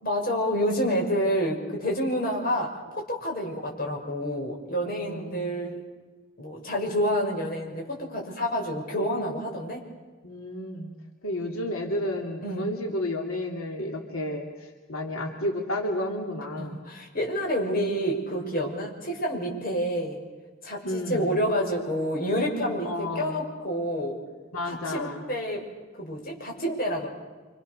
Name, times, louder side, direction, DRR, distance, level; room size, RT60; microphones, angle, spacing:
voice 1, 0.0-5.8 6.4-9.8 12.4-12.7 16.6-20.2 20.6-24.2 24.6-25.7 26.0-27.1, equal, 45° left, -1 dB, 6.5 m, -28 dB
voice 2, 5.0-5.6 10.2-10.9 11.2-16.8 20.8-21.3 22.8-23.4 24.5-25.2, left 1 dB, 85° left, 1 dB, 2.9 m, -31 dB
27.5 x 27.5 x 6.8 m, 1.3 s
head